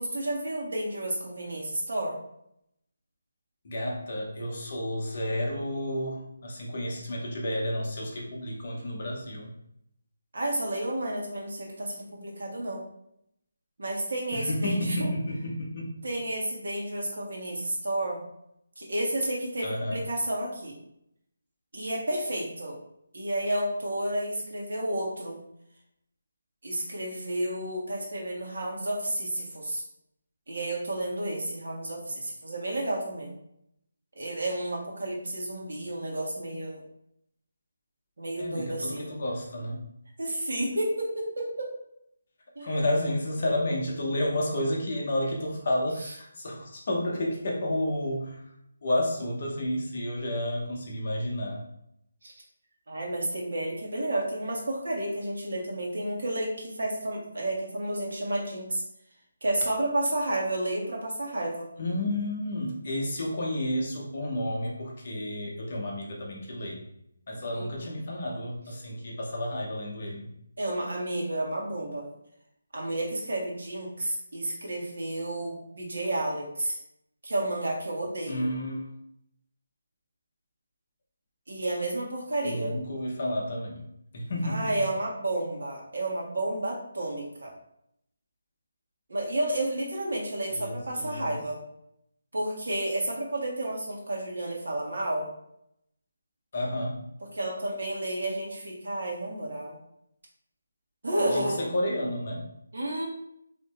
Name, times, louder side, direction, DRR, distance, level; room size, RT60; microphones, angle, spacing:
voice 1, 0.0-2.2 10.3-12.8 13.8-15.1 16.0-18.2 18.8-20.7 21.7-22.7 23.1-25.4 26.6-29.8 30.5-33.3 34.2-36.8 38.2-39.1 40.2-41.7 42.5-42.7 52.2-52.3 52.9-58.8 59.4-61.7 67.5-67.9 70.6-72.1 72.7-76.8 77.2-78.5 81.5-82.8 84.4-87.5 89.1-91.6 92.3-95.3 97.3-99.8 101.0-101.7 102.7-103.1, right 1 dB, 60° right, -2 dB, 1.5 m, -31 dB
voice 2, 3.6-9.5 14.3-15.9 19.6-20.0 38.4-39.8 42.6-48.4 48.8-51.6 61.8-66.8 67.3-70.3 78.3-78.9 82.4-83.9 84.1-84.8 90.5-91.3 96.5-97.0 101.3-102.4, left 1 dB, 30° left, -2 dB, 0.9 m, -31 dB
4.0 x 3.0 x 4.2 m, 0.75 s
hypercardioid pair, 180°, 0 cm